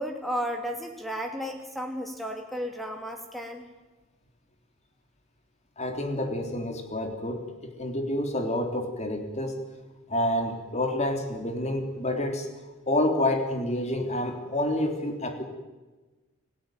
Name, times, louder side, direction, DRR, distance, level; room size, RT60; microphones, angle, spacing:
voice 1, 0.0-3.7, equal, ahead, 3 dB, 2.7 m, -33 dB
voice 2, 5.8-9.6 10.1-12.5 12.9-15.4, left 1 dB, 30° left, 5 dB, 3.5 m, -28 dB
29.5 x 17.0 x 9.4 m, 1.2 s
head